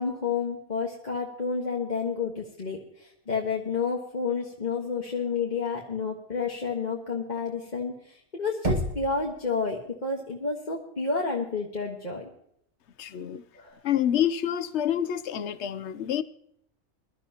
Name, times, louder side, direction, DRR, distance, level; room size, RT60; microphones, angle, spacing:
voice 1, 0.0-12.3 13.5-13.8, left 5 dB, 35° left, -2 dB, 1.5 m, -30 dB
Knock, 8.6-9.6, equal, 35° right, 1.8 m, -29 dB
voice 2, 13.0-13.4 13.8-16.2, left 10 dB, 60° left, 14 dB, 1.0 m, -27 dB
22.0 x 12.5 x 2.9 m, 0.70 s
omnidirectional pair, 1.4 m